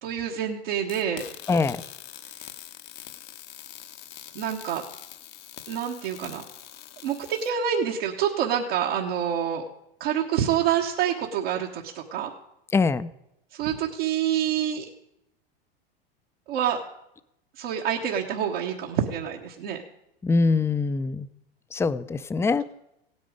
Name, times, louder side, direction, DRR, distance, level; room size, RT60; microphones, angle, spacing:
voice 1, 0.0-1.3 4.3-4.8 5.7-6.4 7.0-9.6 10.0-12.3 13.5-14.8 16.5-16.8 17.6-19.8, right 9 dB, 70° right, -1 dB, 1.4 m, -27 dB
sound 1, 0.9-7.5, left 12 dB, 75° left, 1.3 m, -44 dB
voice 2, 1.5-1.8 12.7-13.1 20.2-21.3 21.7-22.6, left 4 dB, 10° left, 14 dB, 0.5 m, -23 dB
16.0 x 9.7 x 5.1 m, 0.83 s
hypercardioid pair, 95°, 30 cm